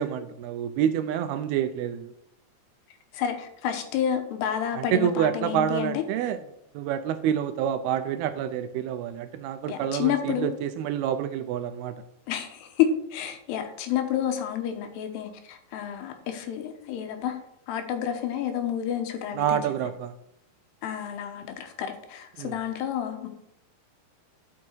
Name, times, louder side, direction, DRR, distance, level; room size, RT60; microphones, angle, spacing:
voice 1, 0.0-2.1 4.8-6.4 6.7-12.0 19.3-20.1 22.4-22.6, right 9 dB, 80° right, 2.4 m, -27 dB
voice 2, 3.1-6.0 9.7-10.6 12.3-17.4 17.7-19.6 20.8-23.3, left 9 dB, 80° left, 3.1 m, -29 dB
11.0 x 6.0 x 4.5 m
omnidirectional pair, 4.8 m